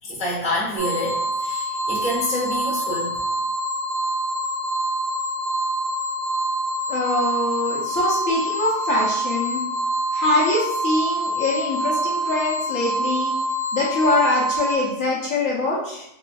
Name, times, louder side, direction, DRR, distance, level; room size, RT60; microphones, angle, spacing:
voice 1, 0.0-3.2, left 1 dB, 5° right, -6 dB, 0.5 m, -27 dB
sound 1, 0.8-14.8, right 1 dB, 60° right, 1.0 m, -25 dB
voice 2, 6.9-9.6 10.1-13.3 13.7-16.0, left 2 dB, 60° left, -5 dB, 0.9 m, -23 dB
4.2 x 2.4 x 2.2 m, 0.81 s
omnidirectional pair, 1.8 m